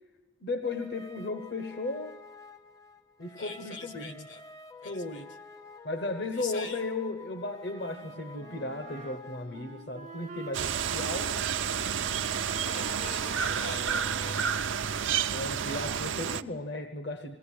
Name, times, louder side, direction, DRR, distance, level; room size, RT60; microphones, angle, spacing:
voice 1, 0.4-2.1 3.2-4.3 4.8-5.3 5.8-11.3 15.3-17.4, left 2 dB, 55° left, 6 dB, 1.0 m, -35 dB
sound 1, 0.6-14.3, left 3 dB, 15° left, 0.6 m, -49 dB
voice 2, 3.4-4.4 4.8-5.2 6.3-6.8 12.6-15.2, left 4 dB, 75° left, 6 dB, 1.9 m, -44 dB
Wind instrument woodwind instrument, 7.7-13.3, right 3 dB, 40° right, 0.6 m, -48 dB
sound 2, 10.5-16.4, right 8 dB, 80° right, 0.6 m, -30 dB
21.0 x 17.0 x 8.6 m, 1.2 s
head